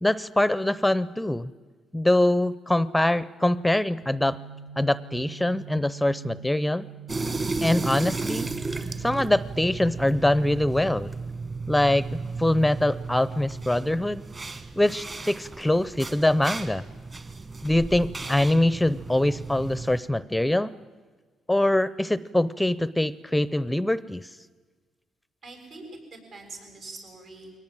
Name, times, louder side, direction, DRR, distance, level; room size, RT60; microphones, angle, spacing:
voice 1, 0.0-1.5 1.9-4.4 4.8-6.9 7.6-8.5 9.0-11.1 11.7-14.2 14.8-16.8 17.6-20.7 21.5-24.3, left 1 dB, 5° left, 18 dB, 0.6 m, -23 dB
sound 1, 4.0-9.6, right 10 dB, 90° right, 4.9 m, -43 dB
sound 2, 7.1-20.0, right 3 dB, 30° right, 1.8 m, -34 dB
voice 2, 25.4-27.5, right 3 dB, 70° right, 3 dB, 7.0 m, -43 dB
22.5 x 18.5 x 9.0 m, 1.4 s
cardioid pair, 90°, 0 cm